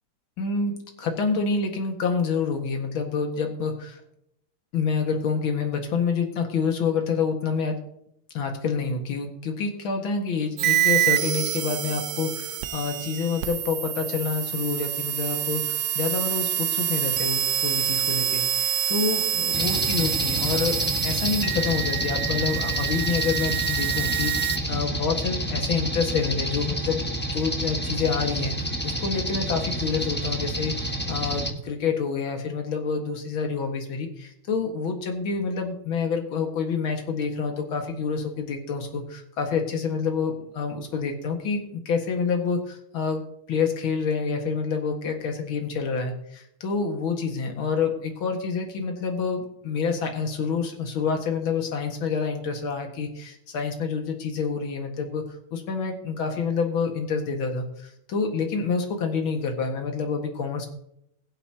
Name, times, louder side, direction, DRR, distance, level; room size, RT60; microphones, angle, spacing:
voice 1, 0.4-4.0 4.7-7.7 8.3-43.2 43.5-55.3 55.5-60.7, left 5 dB, 65° left, 4 dB, 2.5 m, -28 dB
sound 1, 10.6-24.6, right 11 dB, 65° right, 1.3 m, -27 dB
sound 2, 19.5-31.5, equal, 5° left, 1.0 m, -29 dB
21.5 x 8.2 x 2.9 m, 0.76 s
omnidirectional pair, 2.4 m